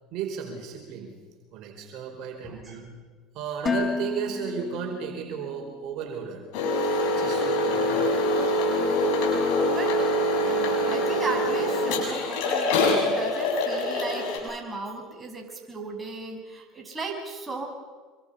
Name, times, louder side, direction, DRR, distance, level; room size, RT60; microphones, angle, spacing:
voice 1, 0.1-1.1 1.5-3.0 3.3-6.4 7.1-8.1, right 7 dB, 60° right, 2 dB, 4.9 m, -34 dB
voice 2, 2.4-2.8 9.1-9.4 9.7-9.9 10.4-17.7, right 3 dB, 20° right, 1 dB, 6.5 m, -36 dB
Dishes pots and pans, 3.7-5.7, left 5 dB, 30° left, 1.6 m, -31 dB
sound 1, 6.5-14.4, left 1 dB, 70° left, 6.9 m, -24 dB
26.5 x 24.5 x 5.7 m, 1.5 s
hypercardioid pair, 80°, 0 cm